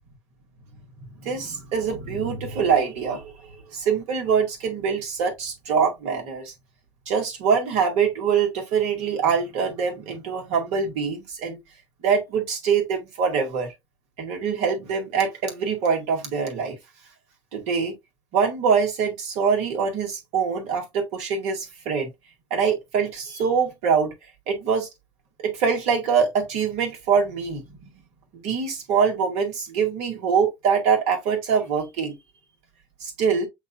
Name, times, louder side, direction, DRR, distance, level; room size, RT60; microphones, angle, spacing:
voice 1, 1.2-3.3 3.7-6.5 7.1-11.6 12.0-13.7 14.2-16.8 17.5-17.9 18.3-22.1 22.5-24.1 24.5-24.9 25.4-27.6 28.3-32.2 33.0-33.5, right 6 dB, 60° right, 2.0 m, -24 dB
8.0 x 2.7 x 2.2 m
figure-of-eight pair, 65°, 14 cm